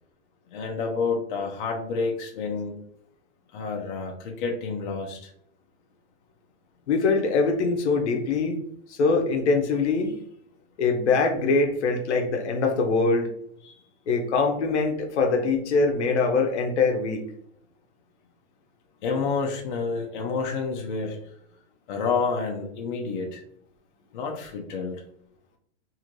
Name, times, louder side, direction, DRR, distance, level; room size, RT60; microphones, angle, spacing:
voice 1, 0.5-2.8 3.5-5.3 19.0-21.2 21.9-23.4 24.1-25.0, left 4 dB, 50° left, 1 dB, 0.7 m, -29 dB
voice 2, 6.9-8.6 8.9-10.2 10.8-13.3 13.6-13.7 14.1-17.3, left 4 dB, 85° left, 3 dB, 0.8 m, -23 dB
3.1 x 2.8 x 2.6 m, 0.70 s
supercardioid pair, 165°, 34 cm